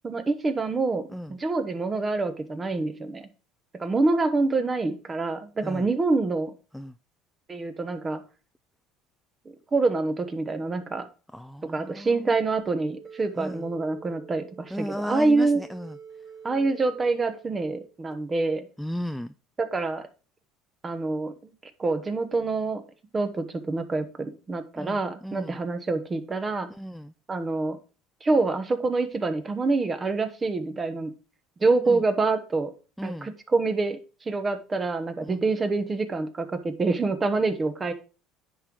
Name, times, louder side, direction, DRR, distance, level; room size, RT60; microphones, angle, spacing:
voice 1, 0.0-1.0 1.3-3.3 3.8-6.5 7.5-8.2 9.7-11.1 11.7-15.6 16.4-18.7 19.6-20.0 20.8-21.5 21.8-22.8 23.1-26.7 27.3-27.8 28.2-31.1 31.6-32.7 33.0-34.0 34.3-37.9, right 3 dB, 20° right, 9 dB, 1.0 m, -26 dB
voice 2, 11.3-12.5 13.4-13.7 14.7-16.0 18.8-19.3 24.8-25.6 26.7-27.1 31.9-32.0 33.0-33.3 35.2-35.4, equal, ahead, 10 dB, 0.3 m, -35 dB
sound 1, 12.6-18.1, right 7 dB, 60° right, 2.0 m, -47 dB
9.9 x 3.9 x 4.6 m, 0.35 s
cardioid pair, 125°, 0 cm